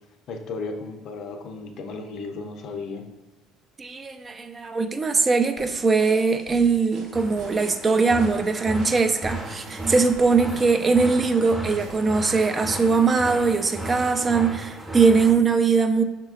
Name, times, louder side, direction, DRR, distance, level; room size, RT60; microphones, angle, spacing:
voice 1, 0.3-3.1, left 3 dB, 60° left, 5 dB, 0.6 m, -34 dB
voice 2, 3.8-16.0, right 4 dB, 30° right, 7 dB, 0.4 m, -21 dB
sound 1, 5.6-12.8, right 2 dB, 80° right, 0.8 m, -46 dB
sound 2, 7.1-15.3, right 1 dB, 10° right, 0.8 m, -35 dB
5.6 x 3.7 x 2.4 m, 1.2 s
supercardioid pair, 85°, 0 cm